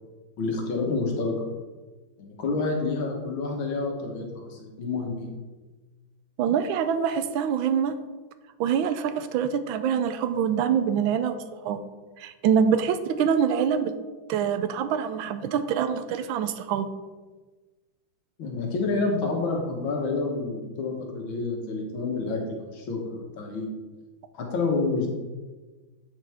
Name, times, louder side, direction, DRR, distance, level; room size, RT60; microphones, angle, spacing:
voice 1, 0.4-1.5 2.2-5.4 18.4-23.8 24.3-25.1, left 3 dB, 80° left, 1 dB, 2.1 m, -28 dB
voice 2, 6.4-8.0 8.6-11.4 11.6-11.8 12.2-13.9 14.3-16.9, right 7 dB, 90° right, 10 dB, 1.4 m, -25 dB
9.0 x 6.5 x 3.5 m, 1.3 s
omnidirectional pair, 2.2 m